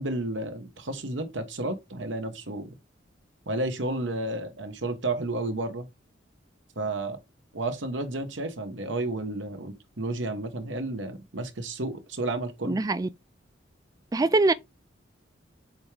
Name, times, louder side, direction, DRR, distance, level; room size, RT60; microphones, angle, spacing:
voice 1, 0.0-2.7 3.5-5.9 6.8-7.2 7.5-12.8, right 2 dB, 85° right, 1.2 m, -32 dB
voice 2, 12.7-13.1 14.1-14.5, right 2 dB, 20° right, 0.3 m, -23 dB
7.8 x 3.6 x 3.3 m
head